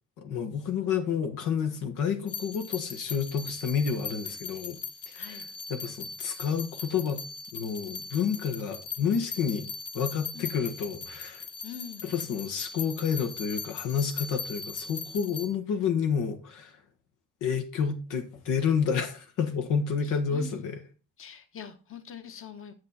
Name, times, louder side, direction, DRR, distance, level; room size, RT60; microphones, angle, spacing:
voice 1, 0.2-4.8 5.1-5.4 5.7-7.2 7.5-11.5 12.0-16.8 17.4-20.8, left 7 dB, 90° left, 1.4 m, -29 dB
sound 1, 2.3-15.5, left 5 dB, 70° left, 1.5 m, -40 dB
voice 2, 5.1-5.5 10.3-10.6 11.6-12.1 20.0-20.7 21.2-22.7, left 8 dB, 45° left, 1.2 m, -44 dB
9.5 x 6.3 x 4.1 m
cardioid pair, 90°, 30 cm